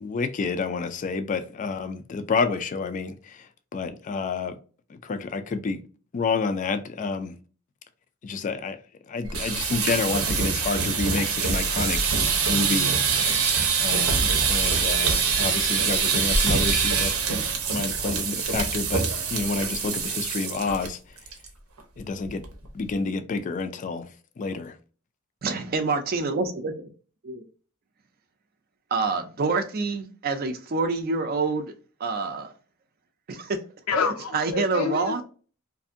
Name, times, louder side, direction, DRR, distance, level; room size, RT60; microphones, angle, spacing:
voice 1, 0.0-3.5 3.7-4.5 4.9-5.8 6.1-7.4 8.2-8.8 9.1-12.0 12.5-13.2 13.8-17.1 17.7-21.0 22.0-22.4 22.7-24.1 24.4-24.7, left 4 dB, 35° left, 0.3 m, -29 dB
sound 1, 9.2-20.9 21.2-21.5 21.8-21.9 22.3-22.7, right 5 dB, 85° right, 0.6 m, -24 dB
voice 2, 25.4-26.9 27.2-27.4 28.9-31.7 32.0-32.5 33.3-33.6 34.3-35.2, right 4 dB, 45° right, 0.4 m, -27 dB
voice 3, 33.9-35.2, left 5 dB, 90° left, 0.6 m, -27 dB
2.6 x 2.5 x 2.5 m
head